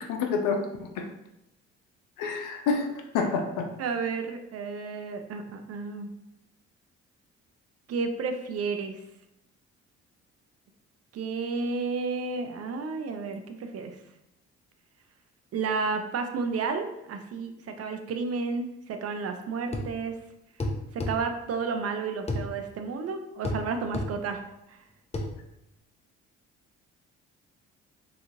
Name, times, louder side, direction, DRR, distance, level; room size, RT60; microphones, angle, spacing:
voice 1, 0.1-1.1 2.2-2.9 3.1-3.7, left 4 dB, 70° left, 4 dB, 0.6 m, -28 dB
voice 2, 3.8-6.1 7.9-9.0 11.1-14.0 15.5-20.2 20.9-24.4 24.7-24.8, right 4 dB, 50° right, 6 dB, 0.5 m, -32 dB
sound 1, 19.7-19.9 20.6-21.2 22.3-22.5 23.4-23.6 23.9-24.1 25.1-25.3, left 1 dB, 20° left, 0.5 m, -29 dB
2.9 x 2.4 x 2.7 m, 0.86 s
hypercardioid pair, 55°, 33 cm